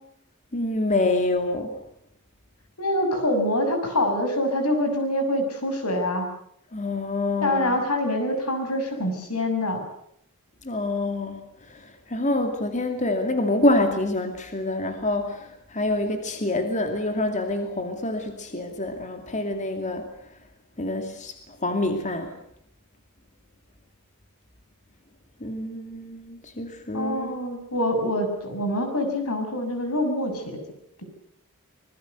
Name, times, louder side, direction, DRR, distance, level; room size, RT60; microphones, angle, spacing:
voice 1, 0.5-1.8 6.7-7.8 10.6-20.0 20.8-22.4 25.4-27.3, left 2 dB, 35° left, 6 dB, 2.4 m, -26 dB
voice 2, 2.8-6.3 7.4-9.8 26.9-30.6 31.0-31.1, left 1 dB, 85° left, 6 dB, 6.7 m, -25 dB
25.5 x 21.0 x 8.0 m, 0.72 s
head